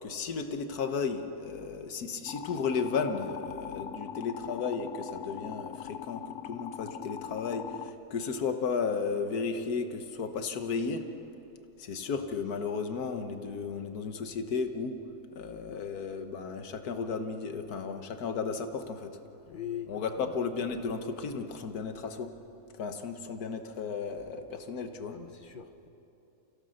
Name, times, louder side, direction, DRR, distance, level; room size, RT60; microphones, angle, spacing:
voice 1, 0.0-11.0 11.8-15.0 15.3-19.1 19.9-22.3 22.7-25.1, left 5 dB, 80° left, 7 dB, 1.7 m, -34 dB
sound 1, 2.3-7.9, left 10 dB, 65° left, 0.9 m, -41 dB
voice 2, 19.5-20.3 25.1-25.9, left 9 dB, 40° left, 8 dB, 1.0 m, -41 dB
29.5 x 16.5 x 6.5 m, 3.0 s
omnidirectional pair, 1.6 m